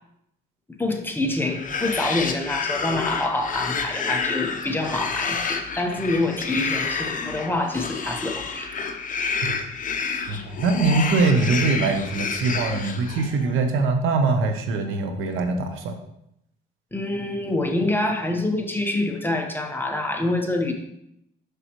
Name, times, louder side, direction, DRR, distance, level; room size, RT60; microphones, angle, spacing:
voice 1, 0.8-8.9 16.9-20.7, left 2 dB, 10° left, 2 dB, 1.0 m, -26 dB
sound 1, 1.4-13.5, left 5 dB, 40° left, 0.8 m, -29 dB
voice 2, 10.3-16.0, right 3 dB, 85° right, 6 dB, 0.9 m, -22 dB
6.7 x 6.4 x 3.0 m, 0.78 s
cardioid pair, 90°, 20 cm